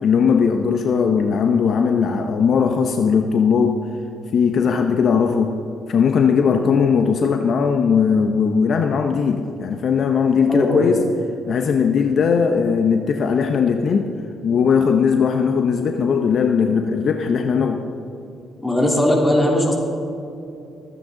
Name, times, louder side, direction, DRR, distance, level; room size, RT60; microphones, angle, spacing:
voice 1, 0.0-3.8 4.3-5.6 5.9-11.0 11.5-14.1 14.4-17.8, left 6 dB, 60° left, 5 dB, 0.8 m, -18 dB
voice 2, 10.5-10.8 18.6-19.7, left 1 dB, 15° left, -2 dB, 3.3 m, -18 dB
23.0 x 9.0 x 3.9 m, 2.7 s
cardioid pair, 90°, 0 cm